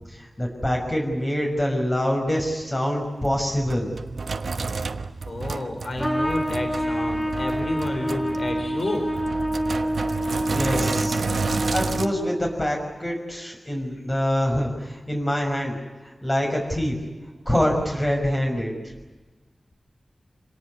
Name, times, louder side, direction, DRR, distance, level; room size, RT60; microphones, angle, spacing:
voice 1, 0.1-3.9 10.5-11.2 11.5-15.8 16.0-17.0 17.5-18.8, equal, 25° left, 0 dB, 5.9 m, -25 dB
Sink (filling or washing), 3.2-12.1, right 4 dB, 80° right, 1.1 m, -30 dB
voice 2, 5.3-9.2 13.9-14.0, left 1 dB, 60° left, 5 dB, 3.9 m, -30 dB
Trumpet, 6.0-12.5, equal, 5° left, 5.3 m, -27 dB
27.0 x 18.5 x 9.7 m, 1.2 s
wide cardioid pair, 75°, 0 cm